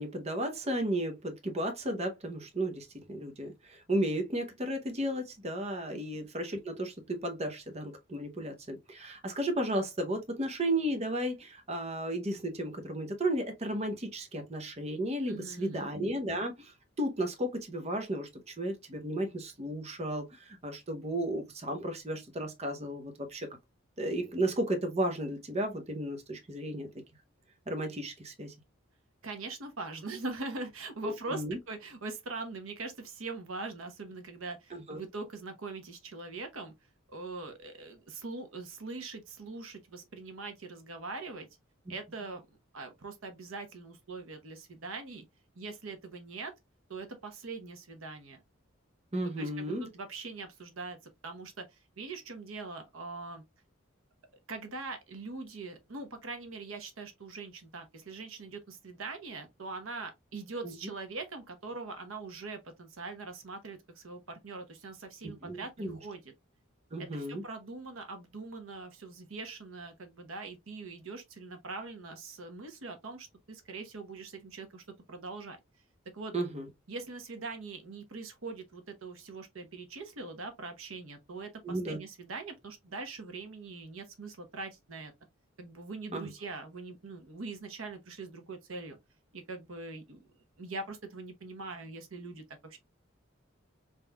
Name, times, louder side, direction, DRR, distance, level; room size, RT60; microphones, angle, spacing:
voice 1, 0.0-23.5 24.0-26.9 27.7-28.5 31.0-31.6 34.7-35.0 49.1-49.9 60.6-60.7 65.2-66.0 66.9-67.4 76.3-76.7 81.6-82.0 86.1-86.3, right 1 dB, 30° right, 0.8 m, -34 dB
voice 2, 15.3-15.9 29.2-36.7 37.1-41.5 41.9-42.4 42.7-45.2 45.5-46.5 46.9-48.4 49.2-51.0 51.2-53.4 54.5-66.3 67.0-75.6 76.1-76.3 76.9-85.1 85.6-89.0 89.3-90.3 90.6-92.8, right 3 dB, 85° right, 1.0 m, -42 dB
4.1 x 3.7 x 2.2 m
head